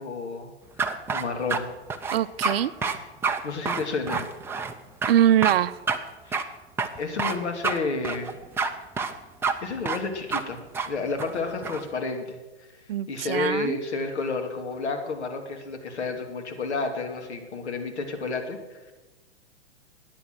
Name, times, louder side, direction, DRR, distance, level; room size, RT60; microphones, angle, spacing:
voice 1, 0.0-1.7 3.4-4.3 6.3-6.4 7.0-8.4 9.6-10.6 10.9-12.7 13.1-18.9, left 4 dB, 70° left, 5 dB, 2.7 m, -31 dB
sound 1, 0.8-1.6 1.9-2.6 2.8-3.0 3.2-3.4 3.7-4.7 5.0-5.1 5.4-5.6 5.9-6.0 6.3-6.4 6.8-7.4 7.6-7.8 8.0-8.7 9.0-9.1 9.4-9.5 9.9-10.0 10.3-10.4 10.7-10.9 11.2-11.8, right 5 dB, 5° right, 0.5 m, -27 dB
voice 2, 2.1-2.7 5.1-5.8 12.9-13.8, right 11 dB, 55° right, 15 dB, 0.6 m, -22 dB
13.0 x 9.7 x 7.6 m, 1.2 s
hypercardioid pair, 125°, 35 cm